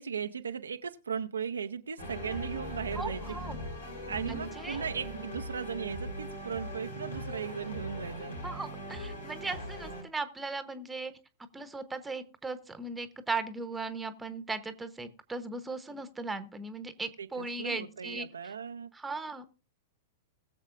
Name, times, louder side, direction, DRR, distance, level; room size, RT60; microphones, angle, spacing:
voice 1, 0.0-3.2 4.1-8.4 17.2-18.9, right 7 dB, 75° right, 0.7 m, -37 dB
sound 1, 2.0-10.0, equal, 80° left, 3.2 m, -40 dB
voice 2, 3.0-3.6 4.1-4.8 8.4-11.1 11.5-18.5 18.9-19.5, right 3 dB, 10° right, 1.1 m, -38 dB
20.5 x 7.2 x 2.6 m
figure-of-eight pair, 105°, 0 cm